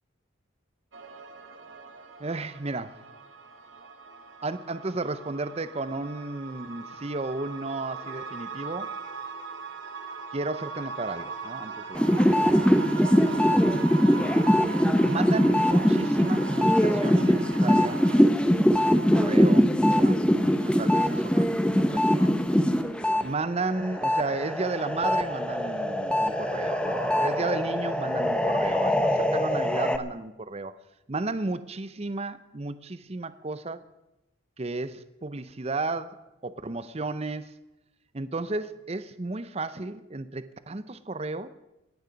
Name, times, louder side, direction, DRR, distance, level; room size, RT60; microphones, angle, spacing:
sound 1, 0.9-18.2, right 5 dB, 70° right, 2.0 m, -40 dB
voice 1, 2.2-3.0 4.4-8.9 10.3-12.6 12.9-13.5 15.1-18.0 18.9-21.5 21.8-22.2 22.5-22.7 23.2-30.7 31.1-33.8 34.6-37.5 38.1-41.5, right 3 dB, 30° right, 13 dB, 0.6 m, -33 dB
sound 2, 11.9-23.2 23.6-30.0, equal, 5° left, 0.8 m, -22 dB
28.0 x 9.5 x 5.2 m, 0.94 s
head